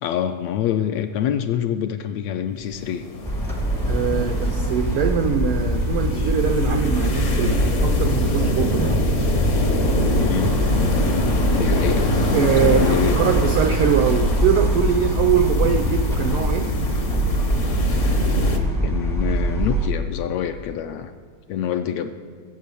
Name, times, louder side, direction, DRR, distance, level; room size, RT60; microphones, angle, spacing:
voice 1, 0.0-3.0 10.2-10.5 10.8-13.2 18.8-21.1 21.5-22.1, left 9 dB, 80° left, 8 dB, 1.6 m, -26 dB
sound 1, 2.6-18.6, left 1 dB, 55° left, 0.8 m, -25 dB
sound 2, 3.2-19.9, equal, 5° left, 0.4 m, -23 dB
voice 2, 3.9-9.1 12.3-16.8, right 8 dB, 90° right, 6 dB, 1.2 m, -22 dB
17.0 x 8.2 x 6.9 m, 2.1 s
omnidirectional pair, 3.4 m